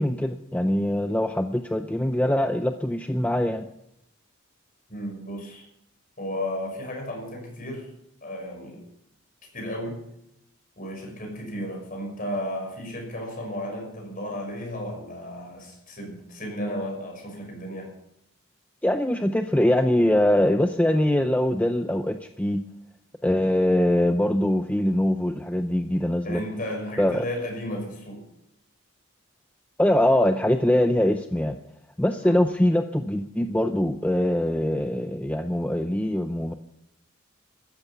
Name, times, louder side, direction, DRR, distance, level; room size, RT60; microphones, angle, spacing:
voice 1, 0.0-3.7 18.8-22.6 23.2-26.4 27.0-27.2 29.8-31.6 32.0-36.5, left 1 dB, 5° left, 7 dB, 0.5 m, -23 dB
voice 2, 4.9-5.7 6.2-7.9 8.2-8.8 9.5-10.0 10.8-17.9 26.2-28.2 32.2-32.4, equal, 40° left, 2 dB, 6.1 m, -34 dB
14.0 x 12.5 x 7.2 m, 0.80 s
head